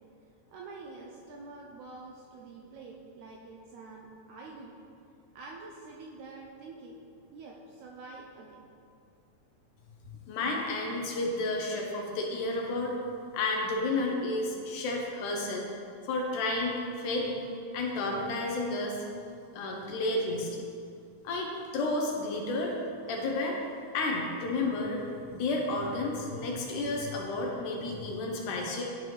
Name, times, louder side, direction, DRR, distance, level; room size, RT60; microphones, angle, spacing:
voice 1, 0.5-4.8 5.4-7.0 7.3-8.6, right 3 dB, 80° right, -1 dB, 1.8 m, -46 dB
voice 2, 10.3-13.0 13.3-15.7 16.0-17.4 17.7-19.0 19.5-20.6 21.2-22.7 23.1-23.6 23.9-28.8, left 2 dB, 75° left, 0 dB, 2.0 m, -31 dB
11.0 x 4.6 x 3.2 m, 2.5 s
omnidirectional pair, 3.9 m